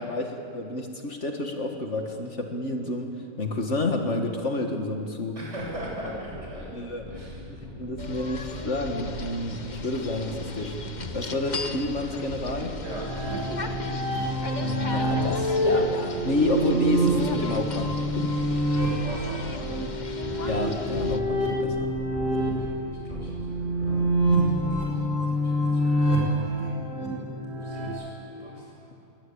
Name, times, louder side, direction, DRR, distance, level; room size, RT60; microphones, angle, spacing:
voice 1, 0.0-5.4 6.7-7.1 7.5-10.8 11.1-12.8 14.6-18.0 20.4-21.9, left 2 dB, 55° left, 3 dB, 2.0 m, -29 dB
voice 2, 5.3-6.7 7.1-7.4 12.8-13.1 14.4-14.6 18.9-19.8 22.4-26.8 27.6-29.0, equal, 50° right, -4 dB, 8.0 m, -42 dB
sound 1, 5.6-24.7, equal, 20° right, 5.8 m, -40 dB
sound 2, 8.0-21.2, left 3 dB, 35° left, 1.2 m, -38 dB
sound 3, 12.9-27.9, equal, 35° right, 5.3 m, -27 dB
23.0 x 19.0 x 8.5 m, 2.7 s
omnidirectional pair, 1.5 m